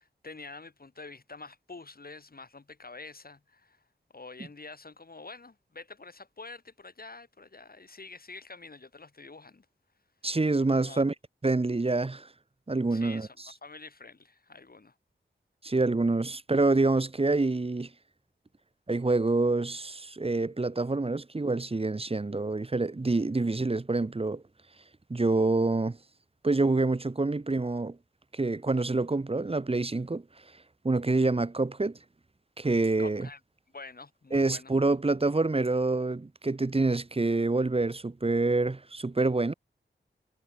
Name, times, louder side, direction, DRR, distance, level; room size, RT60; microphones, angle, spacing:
voice 1, 0.0-3.8 4.1-9.7 10.8-11.1 12.9-13.4 13.6-14.9 33.0-33.4 33.7-34.7, left 3 dB, 50° left, 7.0 m, -47 dB
voice 2, 10.2-11.1 11.4-12.3 12.7-13.3 15.6-17.9 18.9-24.4 25.1-26.0 26.4-28.0 28.3-30.2 30.8-32.0 32.6-33.3 34.3-39.5, right 3 dB, 30° right, 1.3 m, -26 dB
wide cardioid pair, 95°, 19 cm